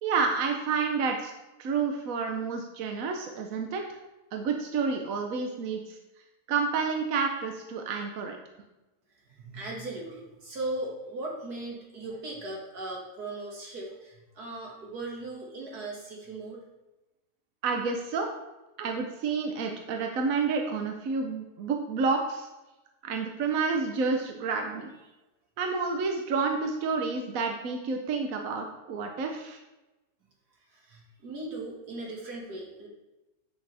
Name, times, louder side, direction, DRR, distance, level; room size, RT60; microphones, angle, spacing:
voice 1, 0.0-1.3 1.6-3.8 4.3-6.0 6.5-8.4 17.6-18.3 18.8-22.5 23.0-24.9 25.6-29.6, right 4 dB, 65° right, 3 dB, 1.2 m, -29 dB
voice 2, 9.3-16.6 30.7-32.9, right 2 dB, 85° right, -3 dB, 2.5 m, -38 dB
9.5 x 6.4 x 3.4 m, 1.0 s
omnidirectional pair, 1.6 m